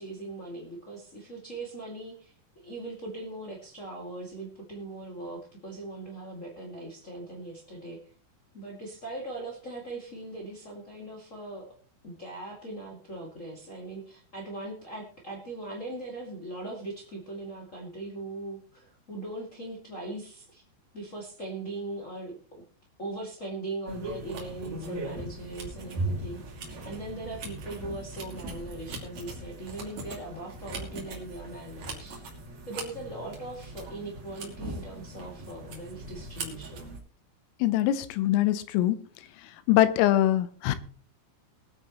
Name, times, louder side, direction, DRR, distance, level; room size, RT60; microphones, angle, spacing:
voice 1, 0.0-8.0 8.5-11.7 12.0-20.6 20.9-22.6 23.0-26.4 26.8-32.2 32.7-36.9, right 2 dB, 35° left, -3 dB, 1.3 m, -40 dB
sound 1, 23.9-37.0, right 2 dB, 40° right, 3.0 m, -39 dB
voice 2, 37.6-39.0 39.7-40.8, left 13 dB, 85° left, 13 dB, 3.5 m, -23 dB
21.5 x 9.1 x 3.1 m, 0.42 s
omnidirectional pair, 5.9 m